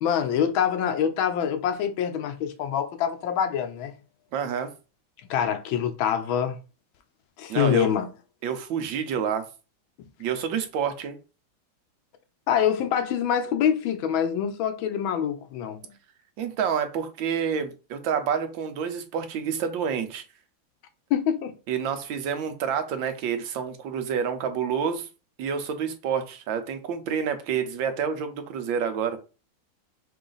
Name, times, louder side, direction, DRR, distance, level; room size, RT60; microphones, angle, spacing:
voice 1, 0.0-3.9 5.3-6.6 7.4-8.1 12.5-15.8 21.1-21.5, left 8 dB, 85° left, 1.4 m, -25 dB
voice 2, 4.3-4.7 7.5-7.9 8.4-9.5 10.2-11.2 16.4-20.2 21.7-25.1 25.4-29.2, right 7 dB, 75° right, 1.5 m, -28 dB
4.9 x 2.5 x 3.9 m
omnidirectional pair, 2.2 m